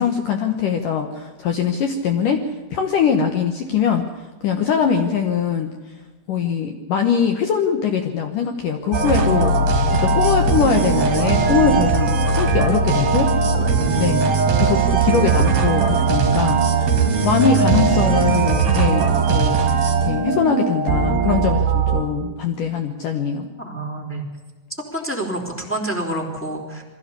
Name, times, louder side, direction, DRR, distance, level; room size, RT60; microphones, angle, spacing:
voice 1, 0.0-4.1 4.4-5.8 6.3-9.5 10.0-13.3 14.0-19.6 20.0-23.5, left 6 dB, 75° left, 5 dB, 1.9 m, -22 dB
sound 1, 8.9-22.0, right 4 dB, 45° right, 2.9 m, -19 dB
voice 2, 13.7-14.3 23.6-24.2 24.9-26.8, right 1 dB, 5° left, 1 dB, 2.7 m, -28 dB
22.5 x 15.5 x 8.3 m, 1.3 s
omnidirectional pair, 5.6 m